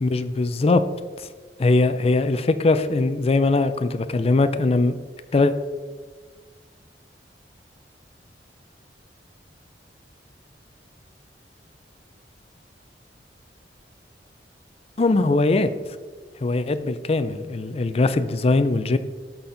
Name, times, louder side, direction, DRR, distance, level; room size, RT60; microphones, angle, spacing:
voice 1, 0.0-0.8 1.6-4.9 5.3-5.5 15.0-15.7 16.4-19.0, left 3 dB, 35° left, 11 dB, 0.4 m, -20 dB
12.5 x 4.3 x 3.9 m, 1.5 s
head